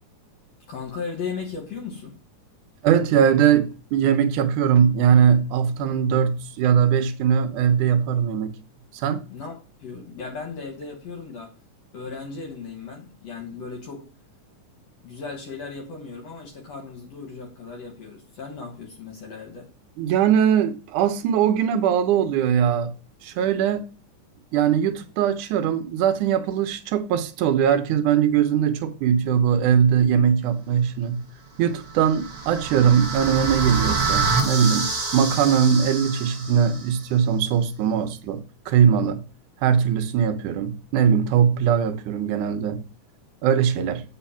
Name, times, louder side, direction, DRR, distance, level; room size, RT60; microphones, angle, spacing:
voice 1, 0.7-2.2 9.3-11.6 11.9-14.1 15.0-19.7, left 5 dB, 60° left, 2.2 m, -36 dB
voice 2, 2.8-8.5 9.0-9.2 20.0-22.9 23.2-23.9 24.5-31.2 31.6-39.2 39.6-42.8 43.4-44.0, right 8 dB, 75° right, 2.3 m, -20 dB
sound 1, 31.8-36.9, right 4 dB, 30° right, 0.7 m, -27 dB
8.1 x 4.9 x 5.8 m
omnidirectional pair, 3.8 m